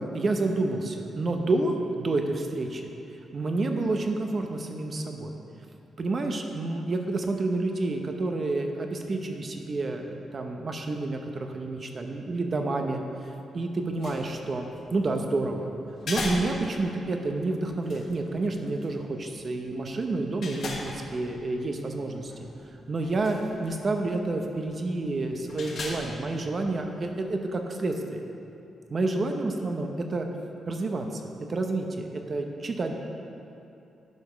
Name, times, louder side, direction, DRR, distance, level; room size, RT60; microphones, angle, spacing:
voice 1, 0.0-2.9 3.3-5.3 6.0-13.0 13.5-15.7 16.1-22.5 22.9-28.2 28.9-30.3 30.7-31.1 31.5-33.0, right 2 dB, 35° right, 4 dB, 0.8 m, -29 dB
sound 1, 13.8-27.2, left 2 dB, 55° left, 1.4 m, -41 dB
10.5 x 5.2 x 6.0 m, 2.8 s
wide cardioid pair, 150°, 0 cm